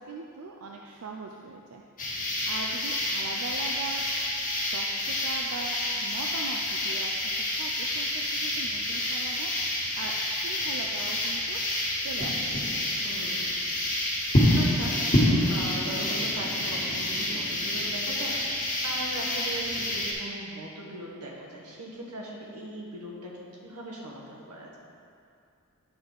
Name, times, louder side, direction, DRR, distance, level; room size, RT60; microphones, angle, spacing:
voice 1, 0.0-1.8 2.5-4.0 4.7-11.6 12.0-12.6, right 4 dB, 65° right, 1 dB, 0.4 m, -40 dB
sound 1, 2.0-20.1, left 1 dB, 40° left, 1.6 m, -28 dB
voice 2, 13.0-13.6 14.6-15.0 15.5-18.4 18.8-24.7, right 1 dB, 90° right, -2 dB, 1.3 m, -39 dB
9.3 x 3.9 x 4.7 m, 2.4 s
head